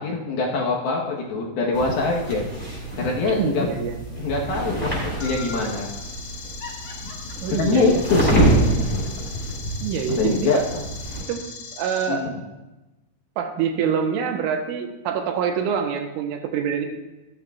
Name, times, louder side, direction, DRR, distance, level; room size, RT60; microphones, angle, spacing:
voice 1, 0.0-2.4 3.0-3.7 4.2-5.9 7.5-8.8 10.1-10.6 12.1-12.3, left 3 dB, 70° left, -2 dB, 2.6 m, -23 dB
sound 1, 1.7-11.2, right 1 dB, 10° left, 4.1 m, -27 dB
voice 2, 3.3-4.0 7.4-8.0 9.8-10.7 11.3-11.4 11.7-12.3 13.4-16.9, right 7 dB, 85° right, 4 dB, 3.4 m, -25 dB
Laughter, 5.1-5.8 6.6-9.7 10.1-10.2, left 4 dB, 50° left, 2.0 m, -40 dB
sound 2, 5.2-12.1, left 5 dB, 85° left, 4.3 m, -39 dB
15.5 x 13.0 x 2.4 m, 1.0 s
omnidirectional pair, 5.5 m